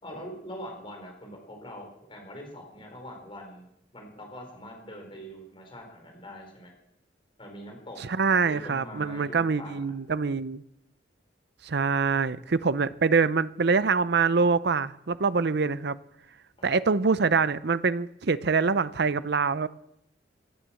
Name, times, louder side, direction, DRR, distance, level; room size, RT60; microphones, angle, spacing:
voice 1, 0.0-3.6 3.9-6.7 7.4-8.0 8.4-9.8 16.6-16.7, equal, 30° left, 2 dB, 5.0 m, -43 dB
voice 2, 8.1-10.6 11.6-16.0 16.6-19.7, right 4 dB, 60° right, 15 dB, 0.6 m, -25 dB
17.5 x 10.0 x 7.7 m, 0.79 s
head